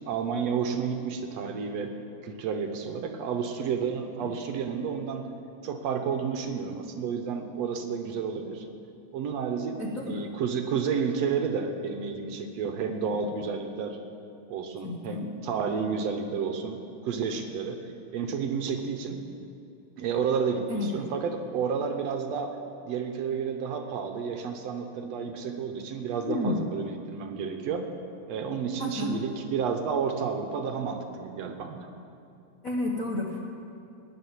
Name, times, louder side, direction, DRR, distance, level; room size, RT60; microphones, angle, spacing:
voice 1, 0.0-1.9 2.2-5.3 5.6-8.7 9.1-9.8 10.1-14.0 14.5-19.3 20.0-22.6 22.8-27.9 28.3-31.9, right 6 dB, 70° right, 5 dB, 2.0 m, -31 dB
voice 2, 9.8-10.3 14.8-15.2 20.7-20.9 26.3-26.6 28.8-29.1 32.6-33.4, left 2 dB, 55° left, -1 dB, 0.9 m, -31 dB
19.0 x 6.6 x 9.8 m, 2.6 s
omnidirectional pair, 3.3 m